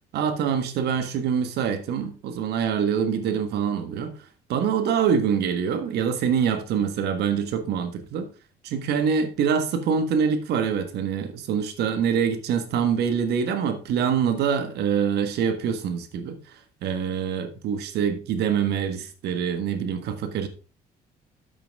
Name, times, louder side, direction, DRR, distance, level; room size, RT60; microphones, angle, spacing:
voice 1, 0.1-4.1 4.5-8.3 8.6-20.5, right 7 dB, 75° right, 1.5 m, -25 dB
8.9 x 7.7 x 3.6 m
cardioid pair, 110°, 17 cm